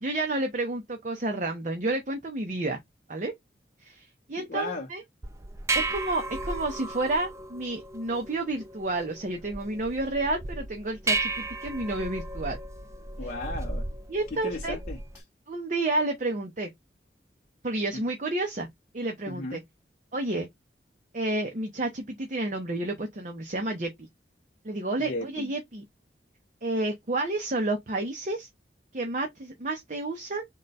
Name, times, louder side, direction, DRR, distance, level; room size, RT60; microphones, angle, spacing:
voice 1, 0.0-2.8 3.1-3.3 3.8-5.0 5.7-12.6 14.1-14.8 15.5-16.7 17.6-18.7 18.9-19.6 20.1-20.5 21.1-24.1 24.6-25.8 26.6-28.5 28.9-30.5, right 2 dB, 45° right, 0.7 m, -30 dB
voice 2, 4.4-4.9 13.2-13.9 14.3-15.3 17.9-18.0 19.3-19.6 25.0-25.5, left 2 dB, 50° left, 0.7 m, -36 dB
sound 1, 5.2-15.2, right 2 dB, 15° right, 0.3 m, -34 dB
3.8 x 2.2 x 4.0 m
head